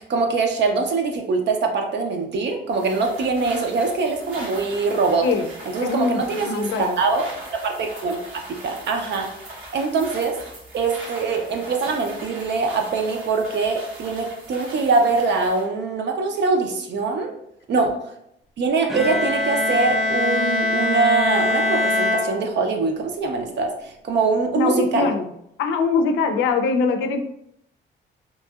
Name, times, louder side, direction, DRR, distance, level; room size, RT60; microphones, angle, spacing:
voice 1, 0.1-5.3 5.7-8.2 8.5-9.3 9.7-10.4 10.7-17.3 17.7-17.9 18.6-25.1, right 4 dB, 60° right, 3 dB, 0.6 m, -23 dB
sound 1, 2.7-15.7, right 1 dB, 85° right, 1.1 m, -40 dB
voice 2, 5.8-7.0 24.5-25.3 25.6-27.2, left 4 dB, 80° left, 6 dB, 0.4 m, -22 dB
Bowed string instrument, 18.9-22.9, left 2 dB, ahead, 0.4 m, -23 dB
3.0 x 2.6 x 2.3 m, 0.76 s
cardioid pair, 90°, 20 cm